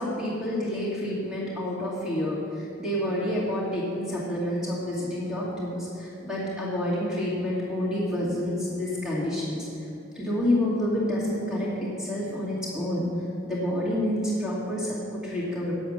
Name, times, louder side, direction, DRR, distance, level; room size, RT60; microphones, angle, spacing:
voice 1, 0.0-9.7 10.1-13.1 13.4-15.7, left 1 dB, 5° right, -7 dB, 2.4 m, -28 dB
9.0 x 7.9 x 6.5 m, 2.8 s
head